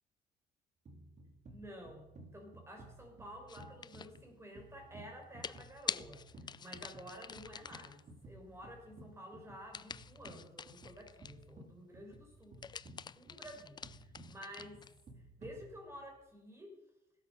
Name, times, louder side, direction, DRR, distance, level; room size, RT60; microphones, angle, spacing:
sound 1, 0.8-16.2, right 1 dB, 45° right, 3.2 m, -56 dB
voice 1, 1.5-2.1 2.3-14.8 15.4-16.8, equal, 15° right, 2 dB, 5.7 m, -52 dB
sound 2, 3.5-4.2 5.4-8.0 9.7-11.5 12.4-15.0, left 6 dB, 25° left, 0.4 m, -45 dB
17.0 x 12.5 x 5.5 m, 0.93 s
cardioid pair, 110°, 17 cm